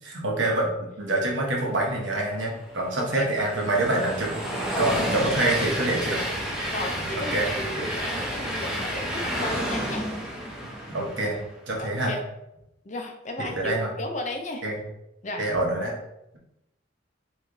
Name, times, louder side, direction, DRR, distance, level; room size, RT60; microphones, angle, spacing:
voice 1, 0.0-4.3 4.8-6.3 7.0-7.5 7.7-7.8 10.9-11.4 11.7-12.1 13.6-13.9 14.6-14.8 15.4-15.9, right 2 dB, 75° right, -1 dB, 1.0 m, -26 dB
Train, 2.1-11.6, equal, 5° right, 0.6 m, -31 dB
voice 2, 3.0-3.3 4.7-5.1 5.4-5.6 6.7-10.0 11.8-12.2 12.8-14.6 15.2-15.4, left 1 dB, 40° left, 3 dB, 0.6 m, -34 dB
3.2 x 3.1 x 3.8 m, 0.87 s
head